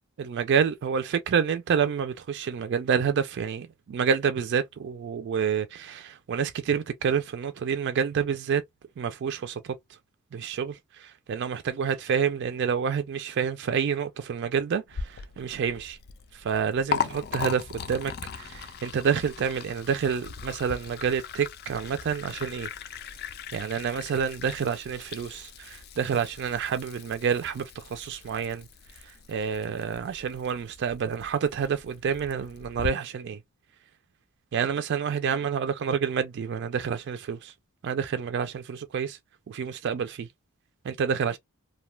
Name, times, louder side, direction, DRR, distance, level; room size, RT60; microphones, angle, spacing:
voice 1, 0.2-8.6 9.0-9.8 10.3-16.0 16.3-22.7 23.5-28.7 29.0-33.4 34.5-37.5 37.8-39.2 39.5-40.3 40.8-41.4, right 7 dB, 55° right, 0.3 m, -28 dB
Liquid, 14.9-32.9, left 7 dB, 50° left, 0.4 m, -39 dB
2.3 x 2.2 x 3.1 m
head